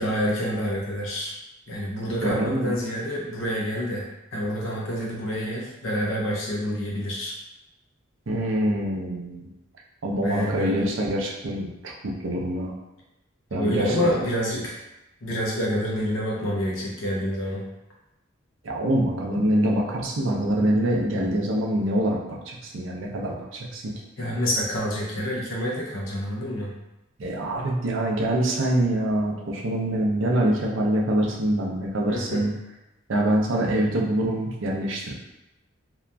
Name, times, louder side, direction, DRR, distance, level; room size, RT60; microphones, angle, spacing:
voice 1, 0.0-1.3 1.7-4.1 4.3-7.3 10.2-10.9 13.5-14.8 15.2-17.6 24.2-26.7 32.1-32.4, equal, 70° left, -4 dB, 0.7 m, -27 dB
voice 2, 2.2-2.7 8.3-9.5 10.0-12.7 13.5-14.1 18.6-22.2 22.5-23.9 27.2-32.5 33.1-35.1, right 1 dB, 70° right, -2 dB, 0.5 m, -25 dB
2.8 x 2.4 x 2.2 m, 0.94 s
head